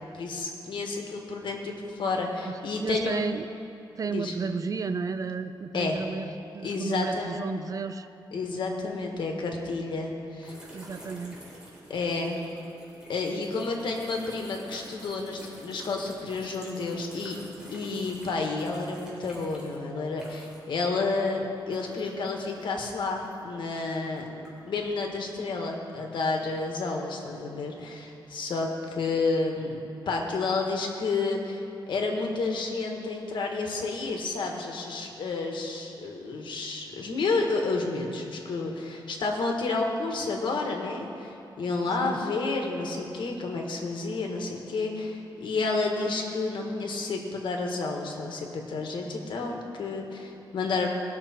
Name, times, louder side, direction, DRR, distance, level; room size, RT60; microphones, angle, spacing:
voice 1, 0.1-3.2 4.1-4.3 5.7-6.0 6.6-7.4 8.3-10.6 11.9-12.4 13.1-17.4 17.7-24.3 24.6-29.8 30.0-50.9, left 3 dB, 70° left, 1 dB, 1.6 m, -30 dB
voice 2, 2.4-3.5 4.0-8.1 10.7-11.4 42.0-42.2, right 5 dB, 45° right, 10 dB, 0.5 m, -33 dB
sound 1, 10.4-20.8 21.1-23.6 24.1-24.9, right 1 dB, 10° right, 3.1 m, -49 dB
19.5 x 6.6 x 4.4 m, 2.8 s
wide cardioid pair, 115°, 8 cm